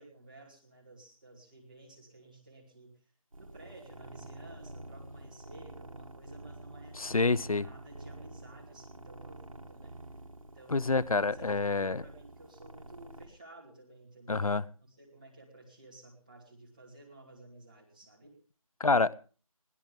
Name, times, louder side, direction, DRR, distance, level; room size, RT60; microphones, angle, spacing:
voice 1, 0.0-2.9 3.4-7.0 7.5-10.0 10.4-14.5 14.9-18.3, right 2 dB, 15° right, 2.6 m, -54 dB
sound 1, 3.3-13.3, right 2 dB, 70° right, 2.1 m, -48 dB
voice 2, 7.0-7.7 10.7-12.0 14.3-14.6 18.8-19.1, left 3 dB, 75° left, 0.8 m, -27 dB
21.5 x 16.5 x 3.3 m
figure-of-eight pair, 180°, 18 cm